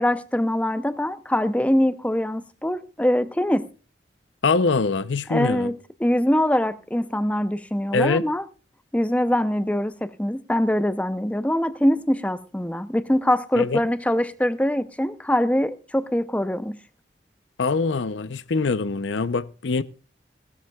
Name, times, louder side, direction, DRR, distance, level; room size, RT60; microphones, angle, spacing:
voice 1, 0.0-3.7 5.3-8.4 8.9-16.8, left 1 dB, 10° left, 0.6 m, -23 dB
voice 2, 4.4-5.7 7.9-8.2 13.6-13.8 17.6-19.8, left 4 dB, 85° left, 0.6 m, -23 dB
18.0 x 13.5 x 2.3 m
head